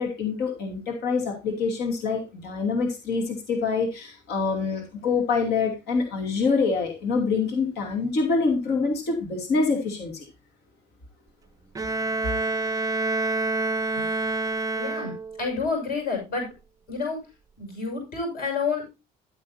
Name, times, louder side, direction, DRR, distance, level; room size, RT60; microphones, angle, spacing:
voice 1, 0.0-10.3, left 4 dB, 75° left, 3 dB, 2.8 m, -26 dB
Bowed string instrument, 11.8-15.5, right 2 dB, 20° right, 0.4 m, -27 dB
voice 2, 14.8-15.1 15.4-16.5 16.9-17.3 17.6-18.9, left 4 dB, 60° left, 2 dB, 6.2 m, -29 dB
12.0 x 8.6 x 2.7 m, 0.26 s
cardioid pair, 110°, 17 cm